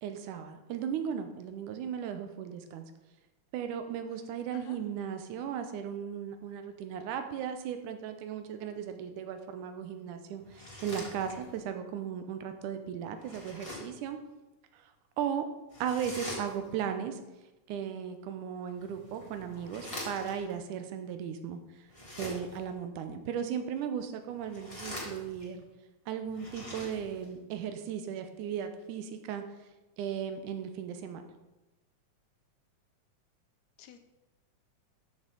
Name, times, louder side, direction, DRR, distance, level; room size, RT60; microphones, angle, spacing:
voice 1, 0.0-2.8 3.5-14.2 14.7-14.9 15.2-15.4 15.8-17.2 17.7-21.6 22.2-25.7 26.1-29.4 30.0-31.2, right 8 dB, 85° right, 8 dB, 2.3 m, -36 dB
voice 2, 3.9-4.1 4.5-4.8 33.8-34.0, left 9 dB, 80° left, 8 dB, 1.9 m, -53 dB
sound 1, 10.4-11.7 13.2-14.0 15.7-16.9 18.7-20.5 21.9-22.7 24.3-25.6 26.2-27.3, left 1 dB, 10° left, 1.9 m, -44 dB
12.5 x 6.2 x 3.9 m, 1.0 s
omnidirectional pair, 3.6 m